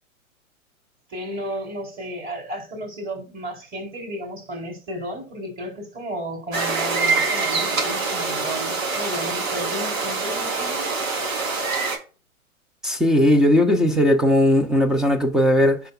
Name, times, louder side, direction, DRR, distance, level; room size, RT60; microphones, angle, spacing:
voice 1, 1.1-10.9, right 1 dB, 20° right, 4.4 m, -33 dB
sound 1, 6.5-12.0, right 4 dB, 65° right, 4.2 m, -25 dB
voice 2, 12.8-15.8, left 1 dB, ahead, 0.5 m, -18 dB
16.5 x 5.9 x 2.5 m
hypercardioid pair, 120°, 43 cm